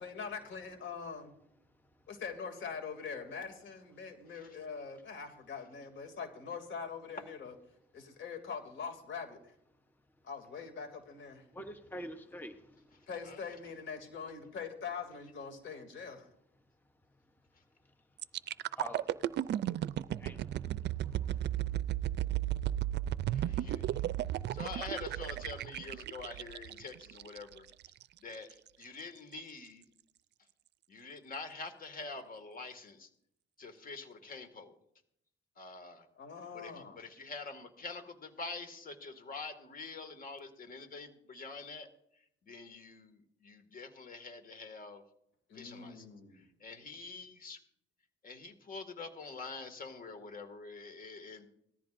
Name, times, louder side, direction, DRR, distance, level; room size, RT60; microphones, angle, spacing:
voice 1, 0.0-1.3 2.1-7.5 7.9-9.5 10.2-11.4 13.1-16.3 36.2-37.0 45.5-46.4, left 6 dB, 70° left, 5 dB, 2.7 m, -43 dB
voice 2, 11.5-13.1 18.7-19.6 20.1-21.6, equal, 10° left, 7 dB, 0.9 m, -48 dB
sound 1, 18.2-28.0 28.5-28.7, right 12 dB, 60° right, 0.4 m, -35 dB
voice 3, 23.3-24.0 24.5-27.7 28.2-29.8 30.9-33.1 33.6-34.8 35.6-36.1 36.5-41.9 42.5-45.0 45.5-46.1 46.3-47.6 48.2-51.5, left 4 dB, 45° left, 7 dB, 2.1 m, -46 dB
18.5 x 14.0 x 2.6 m, 0.73 s
cardioid pair, 90°, 20 cm